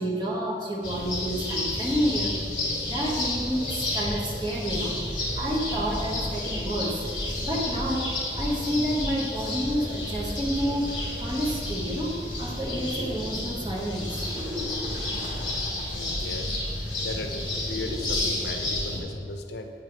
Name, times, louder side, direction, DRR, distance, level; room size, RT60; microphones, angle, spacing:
voice 1, 0.0-7.0 7.4-14.3, equal, 25° right, -4 dB, 1.0 m, -30 dB
sound 1, 0.8-19.0, left 1 dB, 25° left, 1.5 m, -31 dB
voice 2, 15.9-16.6 17.0-19.7, left 2 dB, 70° left, 5 dB, 0.5 m, -36 dB
8.8 x 3.4 x 4.5 m, 2.3 s
head